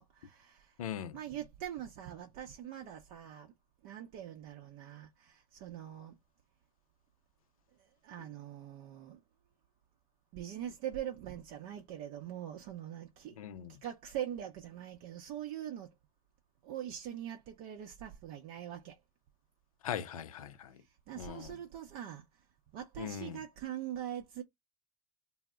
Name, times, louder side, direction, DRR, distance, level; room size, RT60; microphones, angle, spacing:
voice 1, 0.0-0.7 1.1-3.5 3.8-6.1 8.0-9.2 10.3-13.4 13.7-15.9 16.6-19.0 21.1-22.3 22.7-24.4, right 11 dB, 55° right, 0.6 m, -43 dB
voice 2, 0.8-1.2 13.4-13.7 19.8-20.8 21.1-21.6 23.0-23.4, left 9 dB, 80° left, 0.4 m, -40 dB
2.0 x 2.0 x 3.4 m
hypercardioid pair, 75°, 18 cm